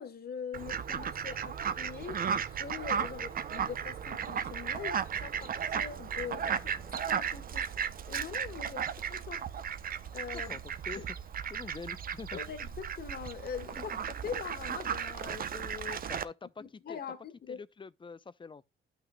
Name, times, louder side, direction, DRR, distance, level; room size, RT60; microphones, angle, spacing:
voice 1, 0.0-2.3 2.5-7.7 8.1-9.7 10.1-10.6 10.9-11.0 12.3-16.1 16.6-17.6, left 7 dB, 50° left, 1.7 m, -43 dB
Fowl, 0.5-16.2, right 7 dB, 45° right, 0.7 m, -35 dB
voice 2, 10.3-11.2 11.5-12.4 13.7-13.8 16.1-17.0 17.5-18.6, left 4 dB, 25° left, 0.6 m, -45 dB
12.5 x 6.0 x 2.3 m
cardioid pair, 90°, 20 cm